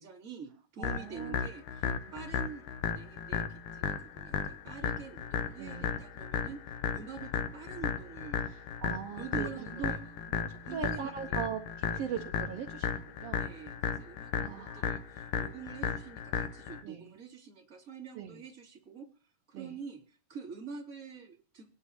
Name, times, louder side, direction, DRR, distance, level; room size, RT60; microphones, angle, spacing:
voice 1, 0.0-6.6 6.9-8.4 9.1-10.2 10.6-11.4 11.9-12.2 13.2-21.7, right 6 dB, 25° right, -2 dB, 2.7 m, -46 dB
sound 1, 0.8-16.8, left 7 dB, 75° left, 2.3 m, -35 dB
voice 2, 0.8-1.4 5.6-6.0 8.5-9.9 10.3-13.5 14.4-15.0 16.8-17.1 18.1-18.4 19.5-19.7, right 8 dB, 70° right, 2 dB, 1.6 m, -40 dB
26.5 x 9.8 x 2.8 m, 0.35 s
omnidirectional pair, 3.9 m